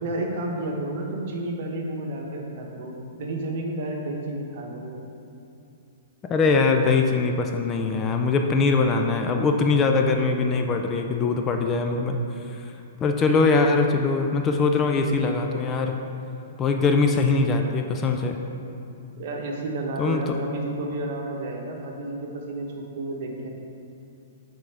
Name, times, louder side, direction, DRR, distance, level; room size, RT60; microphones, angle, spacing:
voice 1, 0.0-5.0 19.2-23.5, right 2 dB, 55° right, 0 dB, 1.0 m, -31 dB
voice 2, 6.2-12.2 12.6-12.7 13.0-16.0 16.6-18.4 20.0-20.4, left 4 dB, 25° left, 4 dB, 0.4 m, -22 dB
8.5 x 3.8 x 3.4 m, 2.7 s
hypercardioid pair, 140°, 0 cm